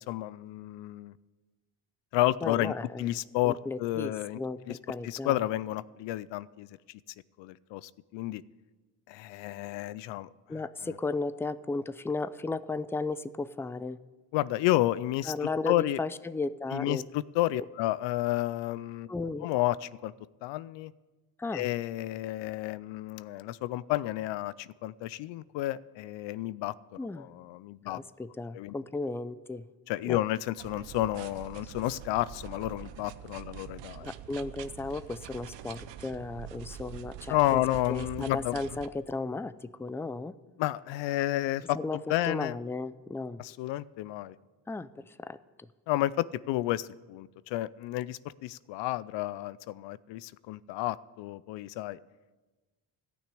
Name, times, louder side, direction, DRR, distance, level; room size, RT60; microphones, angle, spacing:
voice 1, 0.1-1.1 2.1-2.7 3.0-4.4 4.7-4.8 5.0-6.7 7.4-8.4 9.1-10.3 14.3-15.3 15.7-16.0 16.7-19.1 19.4-20.1 20.4-20.9 21.5-26.7 27.2-28.0 28.5-28.7 29.9-34.1 37.3-38.6 40.6-42.6 43.4-44.4 45.9-52.0, left 15 dB, 90° left, 18 dB, 0.5 m, -31 dB
voice 2, 2.4-5.4 10.5-14.0 15.3-17.0 19.1-19.5 21.4-21.7 27.0-27.3 27.8-29.7 30.1-30.2 31.6-31.7 34.0-37.6 37.9-40.3 41.7-43.4 44.7-45.4, left 3 dB, 5° left, 14 dB, 0.4 m, -35 dB
sound 1, 30.6-38.9, right 11 dB, 90° right, 0.7 m, -45 dB
14.0 x 6.2 x 10.0 m, 1.2 s
cardioid pair, 75°, 42 cm